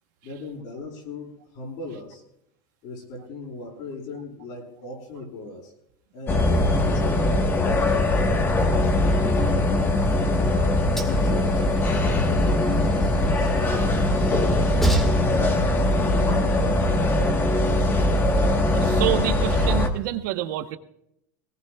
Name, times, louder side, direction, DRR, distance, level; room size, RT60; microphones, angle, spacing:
voice 1, 0.2-2.2 2.8-5.7 6.1-8.1 8.7-9.6 10.4-17.2, left 3 dB, 55° left, -2 dB, 7.6 m, -38 dB
sound 1, 6.3-19.9, left 1 dB, 20° left, 1.3 m, -21 dB
Train, 9.6-17.3, right 1 dB, 5° left, 1.8 m, -33 dB
voice 2, 18.7-20.8, right 15 dB, 70° right, 9 dB, 1.1 m, -27 dB
21.5 x 19.0 x 2.4 m, 0.74 s
supercardioid pair, 145°, 10 cm